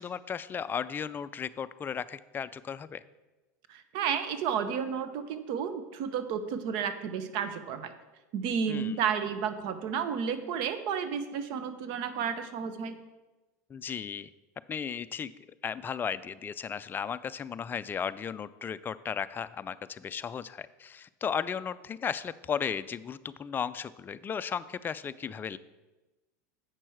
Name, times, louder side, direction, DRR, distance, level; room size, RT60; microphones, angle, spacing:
voice 1, 0.0-3.0 8.7-8.9 13.7-14.3 14.7-15.3 15.6-25.6, left 7 dB, 20° left, 14 dB, 0.3 m, -35 dB
voice 2, 3.7-7.9 8.3-13.0, right 7 dB, 60° right, 11 dB, 0.7 m, -32 dB
8.0 x 6.1 x 4.5 m, 1.1 s
supercardioid pair, 110°, 9 cm